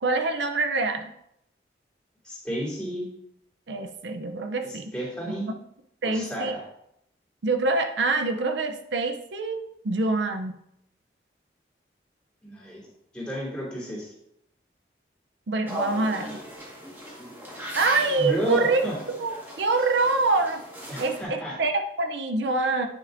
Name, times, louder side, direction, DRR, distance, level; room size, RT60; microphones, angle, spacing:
voice 1, 0.0-1.1 3.7-4.9 5.3-5.5 6.0-6.5 7.4-10.6 15.5-16.4 17.7-18.8 19.1-20.6 21.0-22.9, right 3 dB, 80° right, 7 dB, 0.6 m, -25 dB
voice 2, 2.2-3.1 4.6-5.5 6.0-6.6 12.4-12.8 13.1-14.1 18.2-18.9 20.9-21.5, equal, 5° left, -6 dB, 3.1 m, -32 dB
sound 1, 15.7-21.2, equal, 10° right, 1.6 m, -38 dB
9.4 x 6.6 x 2.6 m, 0.77 s
head